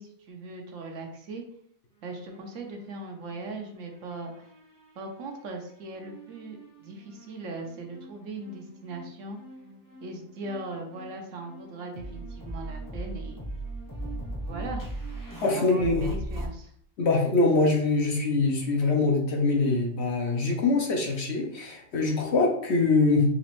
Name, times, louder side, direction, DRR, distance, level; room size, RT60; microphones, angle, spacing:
voice 1, 0.0-1.4 2.0-4.5 5.0-9.4 10.0-13.4 14.5-14.8 15.6-16.7, right 2 dB, 70° right, 3 dB, 1.1 m, -39 dB
sound 1, 2.0-3.6 3.9-5.3 6.0-16.5, right 2 dB, 20° left, 0.7 m, -40 dB
voice 2, 15.4-16.1 17.0-23.2, left 3 dB, 60° left, 0 dB, 0.9 m, -24 dB
4.0 x 3.0 x 3.0 m, 0.66 s
omnidirectional pair, 1.4 m